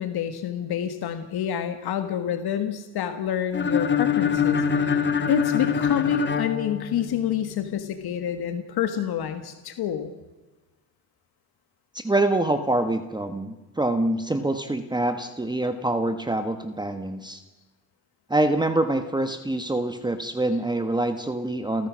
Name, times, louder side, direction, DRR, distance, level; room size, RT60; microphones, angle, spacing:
voice 1, 0.0-10.1, left 9 dB, 75° left, 8 dB, 1.6 m, -28 dB
sound 1, 3.5-7.4, left 7 dB, 30° left, 1.6 m, -24 dB
voice 2, 11.9-17.4 18.3-21.9, right 2 dB, 10° right, 8 dB, 1.2 m, -25 dB
29.5 x 14.0 x 6.3 m, 1.2 s
cardioid pair, 120°, 38 cm